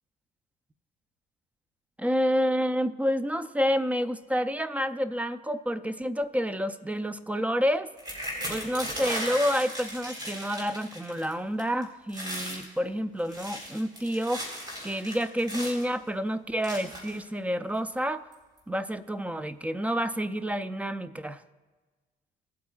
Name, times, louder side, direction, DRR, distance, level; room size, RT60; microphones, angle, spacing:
voice 1, 2.0-7.9 8.5-14.4 14.8-18.3 18.7-21.4, equal, 10° right, 12 dB, 0.4 m, -29 dB
sound 1, 8.0-11.3 11.6-11.8 12.1-12.6 13.2-15.9 16.6-17.2 17.9-18.0 18.3-18.6, equal, 25° right, 3.7 m, -36 dB
18.5 x 8.4 x 2.3 m, 1.3 s
cardioid pair, 110°, 17 cm